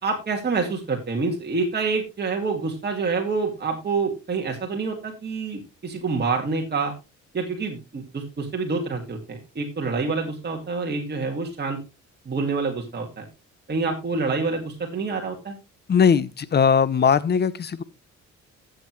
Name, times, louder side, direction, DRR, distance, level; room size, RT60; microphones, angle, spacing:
voice 1, 0.0-6.9 7.3-11.8 12.3-13.3 13.7-15.5, right 4 dB, 35° right, 2.2 m, -27 dB
voice 2, 15.9-17.8, left 6 dB, 35° left, 0.8 m, -19 dB
12.5 x 7.9 x 3.2 m
cardioid pair, 90°, 30 cm